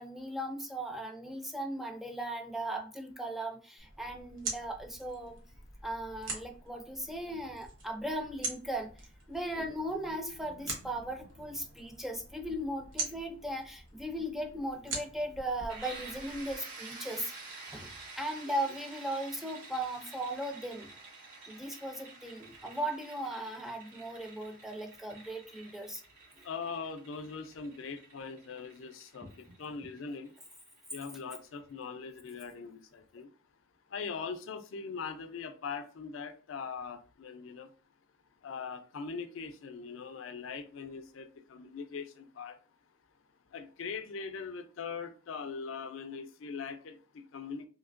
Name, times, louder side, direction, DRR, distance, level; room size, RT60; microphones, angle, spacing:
voice 1, 0.0-5.3 5.8-8.9 9.3-17.3 17.7-17.9 18.2-20.9 21.5-26.0 29.2-29.5, right 1 dB, ahead, 0.3 m, -37 dB
sound 1, 3.8-16.5, right 3 dB, 70° right, 1.1 m, -44 dB
sound 2, 15.7-31.3, right 3 dB, 85° right, 1.6 m, -50 dB
voice 2, 26.4-29.3 29.6-30.3 30.9-33.3 33.9-37.7 38.4-42.6 43.5-47.7, left 5 dB, 80° left, 0.4 m, -41 dB
3.1 x 2.8 x 2.5 m
head